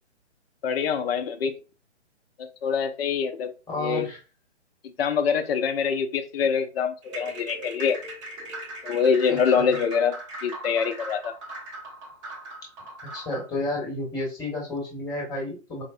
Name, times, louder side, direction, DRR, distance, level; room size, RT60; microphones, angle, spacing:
voice 1, 0.6-1.5 2.4-3.5 3.8-4.1 4.8-8.0 8.8-11.3, left 6 dB, 55° left, 0.6 m, -25 dB
voice 2, 3.7-4.2 9.3-9.8 13.1-15.8, left 2 dB, 10° left, 1.1 m, -31 dB
sound 1, 7.0-13.5, right 1 dB, 25° right, 0.7 m, -39 dB
4.6 x 2.0 x 2.5 m
hypercardioid pair, 140°, 36 cm